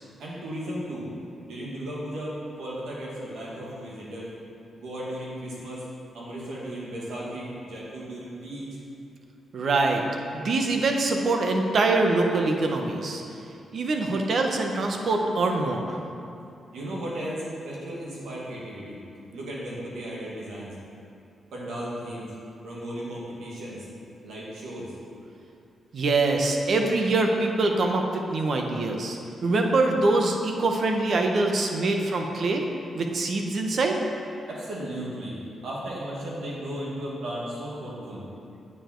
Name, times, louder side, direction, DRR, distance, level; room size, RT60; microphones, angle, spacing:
voice 1, 0.2-1.1 1.4-4.3 4.7-5.8 6.1-8.8 16.7-19.0 19.3-20.8 21.5-22.3 22.6-23.9 24.2-24.9 34.5-35.4 35.6-38.3, right 1 dB, 85° right, -5 dB, 2.3 m, -35 dB
voice 2, 9.5-10.0 10.3-13.2 13.7-16.0 25.9-32.6 32.9-34.0, right 2 dB, 60° right, 3 dB, 1.0 m, -24 dB
8.8 x 7.1 x 4.6 m, 2.6 s
cardioid pair, 75°, 0 cm